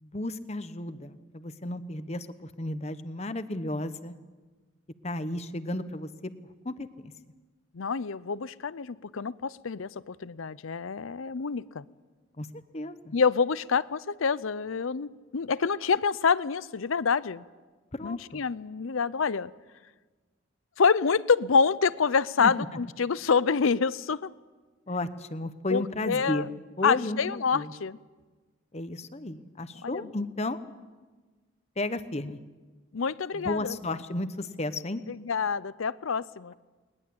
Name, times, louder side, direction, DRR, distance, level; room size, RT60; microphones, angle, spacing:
voice 1, 0.0-4.1 5.0-6.3 6.6-7.1 12.4-12.5 12.7-13.1 17.9-18.4 22.4-22.5 24.9-26.5 26.8-27.7 28.7-30.6 31.8-32.4 33.3-35.0, left 1 dB, 30° left, 11 dB, 1.0 m, -33 dB
voice 2, 7.7-11.8 13.1-17.4 18.0-19.5 20.8-24.3 25.7-26.5 26.8-28.0 29.8-30.1 32.9-33.8 35.1-36.5, left 5 dB, 80° left, 18 dB, 0.6 m, -27 dB
20.5 x 20.5 x 8.7 m, 1.3 s
head